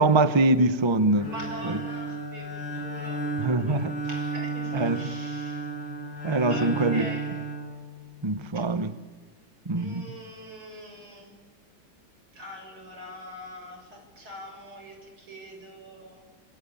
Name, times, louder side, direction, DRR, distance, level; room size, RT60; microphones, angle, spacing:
voice 1, 0.0-1.3 1.6-1.8 3.4-3.9 4.7-5.0 6.2-7.0 8.2-8.9 9.6-10.1, right 2 dB, 20° right, 12 dB, 0.7 m, -23 dB
Bowed string instrument, 1.2-8.3, right 3 dB, 85° left, 5.4 m, -33 dB
voice 2, 1.2-5.7 6.5-7.3 8.5-8.7 9.8-11.3 12.3-16.2, equal, 85° right, 3 dB, 8.3 m, -43 dB
26.0 x 23.5 x 8.5 m, 1.3 s
omnidirectional pair, 2.2 m